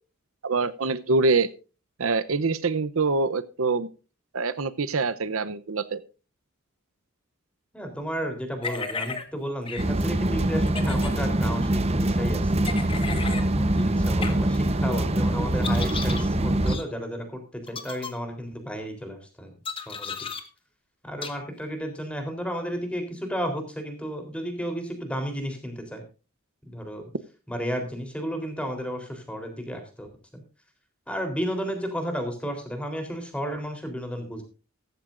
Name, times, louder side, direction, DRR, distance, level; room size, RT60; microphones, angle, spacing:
voice 1, 0.4-1.5 2.0-3.9 4.3-6.0, right 3 dB, 75° right, 15 dB, 0.8 m, -25 dB
voice 2, 7.7-12.6 13.2-17.4 17.7-19.5 19.9-20.1 21.0-26.0 26.7-27.0 27.5-30.1 30.3-30.4 31.1-34.4, equal, 5° left, 5 dB, 3.6 m, -33 dB
sound 1, 8.6-9.2 9.7-9.8 10.7-11.1 12.6-13.5 14.2-14.3 15.6-16.2 16.7-16.8 17.7-18.1 19.6-20.4 21.2-21.3, left 4 dB, 25° left, 1.5 m, -34 dB
sound 2, 9.8-16.8, right 1 dB, 30° right, 0.9 m, -24 dB
16.0 x 14.5 x 2.6 m, 0.33 s
head